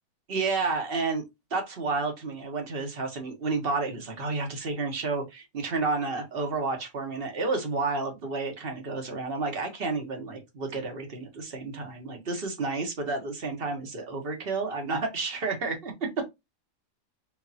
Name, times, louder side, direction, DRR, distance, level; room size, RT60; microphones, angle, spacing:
voice 1, 0.3-1.2 1.5-16.1, right 3 dB, 45° right, 4 dB, 1.2 m, -31 dB
4.0 x 3.4 x 2.7 m, 0.21 s
omnidirectional pair, 1.5 m